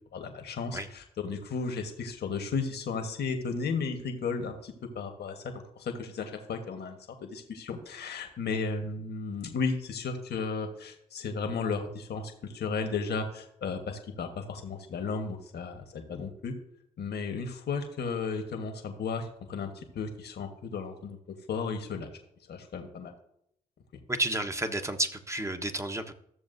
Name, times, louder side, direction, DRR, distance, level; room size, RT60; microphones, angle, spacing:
voice 1, 0.1-16.5 17.0-22.1 22.5-23.1, left 4 dB, 65° left, 5 dB, 1.4 m, -34 dB
voice 2, 24.1-26.1, right 1 dB, 15° right, 7 dB, 1.1 m, -31 dB
14.0 x 7.0 x 2.7 m, 0.73 s
hypercardioid pair, 45°, 18 cm